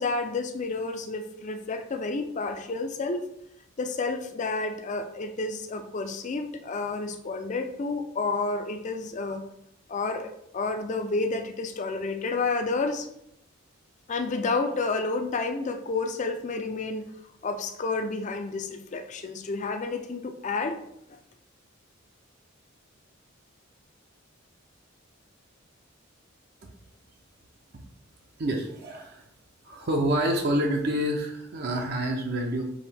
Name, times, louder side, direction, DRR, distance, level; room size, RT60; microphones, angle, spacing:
voice 1, 0.0-3.3 3.8-9.4 9.9-13.1 14.1-17.1 17.4-20.8, left 3 dB, 35° left, 7 dB, 0.4 m, -30 dB
voice 2, 28.4-29.3 29.6-32.6, right 1 dB, 50° right, 2 dB, 0.6 m, -27 dB
4.9 x 3.0 x 3.3 m, 0.78 s
head